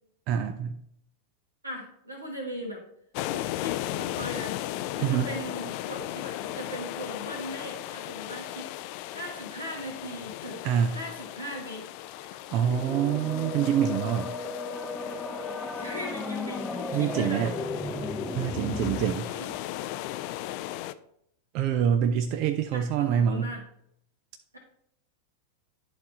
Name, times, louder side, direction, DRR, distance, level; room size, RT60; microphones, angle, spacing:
voice 1, 0.3-0.8 5.0-5.3 10.6-11.0 12.5-14.3 16.9-17.5 18.3-19.3 21.5-23.5, right 8 dB, 40° right, 7 dB, 0.5 m, -26 dB
voice 2, 1.6-2.8 3.3-4.6 4.9-8.7 9.1-10.6 10.9-11.8 15.7-17.5 19.2-19.5 22.7-23.6, equal, 85° right, -1 dB, 2.2 m, -39 dB
sound 1, 3.1-20.9, left 14 dB, 45° left, 0.4 m, -37 dB
sound 2, 12.6-19.0, left 2 dB, 5° left, 0.7 m, -35 dB
11.5 x 4.1 x 2.9 m, 0.72 s
figure-of-eight pair, 90°, 0 cm